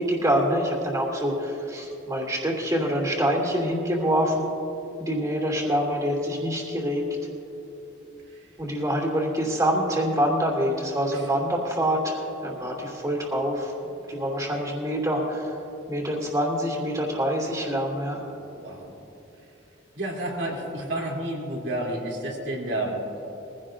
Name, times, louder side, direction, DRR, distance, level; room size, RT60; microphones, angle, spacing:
voice 1, 0.0-4.5 5.0-7.1 8.6-13.7 14.1-15.5 15.9-18.2, equal, 20° right, -1 dB, 2.7 m, -25 dB
voice 2, 18.4-18.9 20.0-23.0, right 1 dB, 65° right, -2 dB, 3.0 m, -31 dB
22.0 x 16.0 x 2.6 m, 2.9 s
head